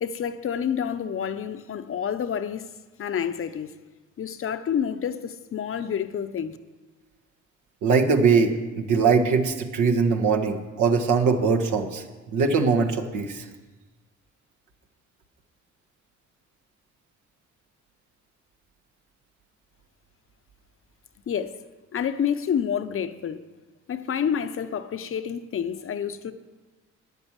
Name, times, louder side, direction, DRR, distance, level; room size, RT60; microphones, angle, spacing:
voice 1, 0.0-2.7 3.0-3.7 4.2-6.6 21.3-21.6 21.9-23.5 23.9-26.3, left 8 dB, 45° left, 0.7 m, -28 dB
voice 2, 7.8-12.0 12.3-13.4, right 5 dB, 80° right, 1.4 m, -21 dB
10.0 x 8.1 x 7.4 m
cardioid pair, 90°, 30 cm